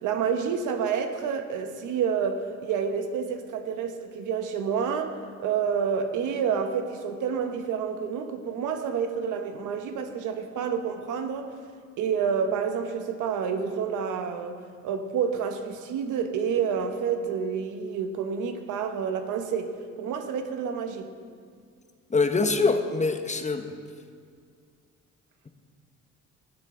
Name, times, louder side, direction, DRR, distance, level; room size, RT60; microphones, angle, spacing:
voice 1, 0.0-11.5 12.0-21.1, right 6 dB, 90° right, 6 dB, 1.1 m, -29 dB
voice 2, 22.1-23.7, left 3 dB, 25° left, 7 dB, 0.9 m, -24 dB
18.0 x 8.5 x 3.8 m, 2.1 s
cardioid pair, 90°, 30 cm